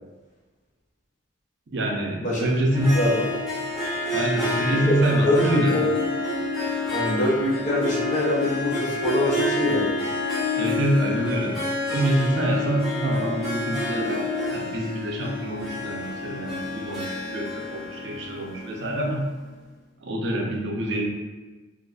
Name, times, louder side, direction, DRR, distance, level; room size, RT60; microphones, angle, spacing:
voice 1, 1.7-3.1 4.1-5.7 10.6-11.6 11.9-19.2 20.0-21.1, right 1 dB, 60° right, 0 dB, 0.5 m, -26 dB
Harp, 2.7-19.2, left 2 dB, ahead, 0.9 m, -28 dB
voice 2, 2.9-3.3 4.7-5.0 5.2-5.9 6.9-10.0, left 1 dB, 40° left, -4 dB, 0.7 m, -24 dB
3.8 x 2.5 x 2.3 m, 1.2 s
head